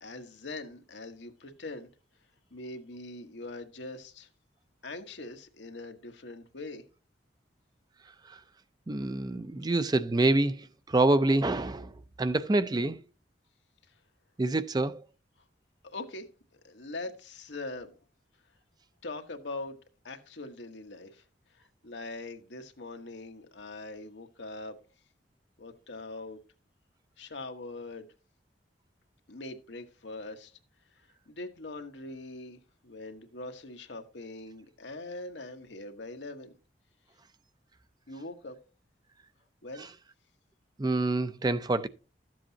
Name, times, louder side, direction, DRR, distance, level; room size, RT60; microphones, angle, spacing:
voice 1, 0.0-1.9 2.5-4.3 4.8-6.8 15.8-16.3 16.6-17.9 19.0-19.8 20.0-21.2 21.5-24.8 25.6-26.4 27.2-28.1 29.3-30.5 31.3-36.5 38.1-38.6 39.6-39.9, left 2 dB, 85° left, 1.3 m, -42 dB
voice 2, 8.9-11.9 12.2-13.0 14.4-15.0 40.8-41.9, right 2 dB, 25° right, 0.4 m, -26 dB
13.0 x 7.7 x 2.8 m
head